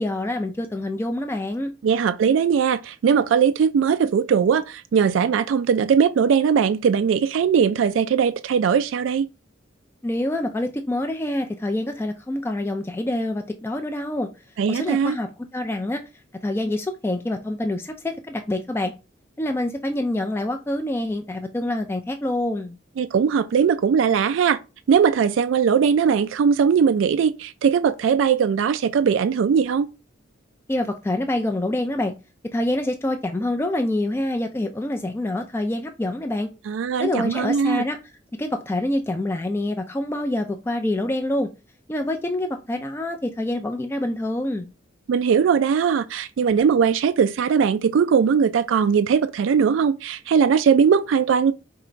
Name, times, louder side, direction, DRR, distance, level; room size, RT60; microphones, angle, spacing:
voice 1, 0.0-1.7 10.0-14.3 14.7-16.0 16.4-18.9 19.4-22.8 30.7-32.1 32.5-36.5 37.0-38.0 38.4-41.5 41.9-44.7, left 1 dB, 15° left, 0.4 m, -26 dB
voice 2, 1.8-9.3 14.6-15.2 23.0-24.6 24.9-29.9 36.7-37.8 45.1-51.5, right 7 dB, 80° right, 0.3 m, -20 dB
3.7 x 3.0 x 4.4 m
head